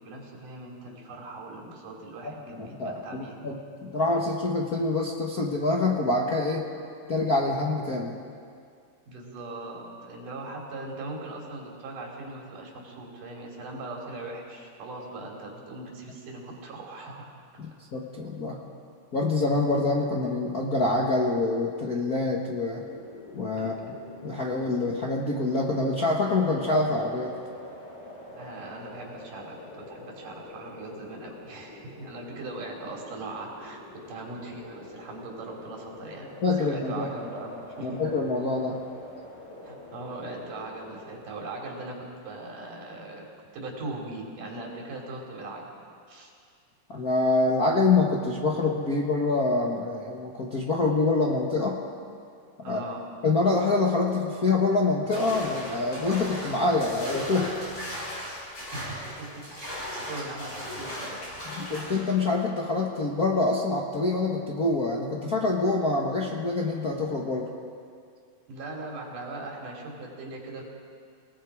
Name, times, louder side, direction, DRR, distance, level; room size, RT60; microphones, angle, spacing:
voice 1, 0.0-3.4 4.1-4.3 9.1-17.3 23.6-24.0 28.3-33.8 34.1-36.3 36.6-38.0 39.6-42.0 42.2-43.2 43.5-45.7 46.1-46.3 52.6-53.0 58.6-59.4 60.1-61.2 68.5-70.6, right 2 dB, 75° right, 0 dB, 4.6 m, -40 dB
voice 2, 2.6-6.7 7.1-8.2 17.6-18.6 19.1-22.8 23.3-23.9 24.2-27.4 36.4-37.1 37.8-38.8 46.9-51.8 52.6-52.8 53.2-57.5 61.6-67.5, left 3 dB, 45° left, -3 dB, 1.2 m, -26 dB
sound 1, 22.8-41.2, left 1 dB, 75° left, 8.9 m, -46 dB
sound 2, 55.1-62.0, left 1 dB, 25° left, 7.3 m, -37 dB
29.5 x 19.0 x 4.9 m, 2.3 s
omnidirectional pair, 3.7 m